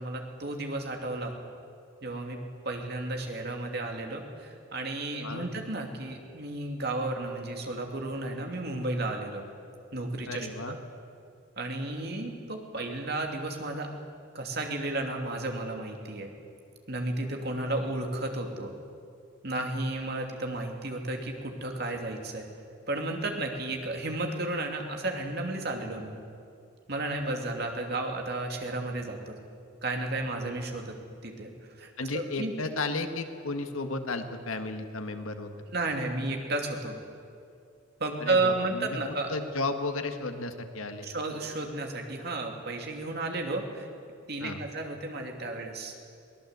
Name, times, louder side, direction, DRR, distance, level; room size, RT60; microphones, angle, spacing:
voice 1, 0.0-1.4 2.0-2.4 2.6-9.4 9.9-10.8 11.6-13.9 14.3-16.3 16.9-18.7 19.4-22.5 22.9-26.1 26.9-29.4 29.8-31.0 31.2-31.5 31.8-32.5 35.7-37.0 38.0-39.3 41.0-43.9 44.3-45.9, right 2 dB, 50° right, 3 dB, 2.7 m, -33 dB
voice 2, 10.3-10.8 27.3-27.4 32.0-35.5 38.2-39.0 39.3-41.1 44.4-44.7, left 3 dB, 90° left, 7 dB, 1.7 m, -34 dB
22.5 x 18.5 x 8.2 m, 2.4 s
head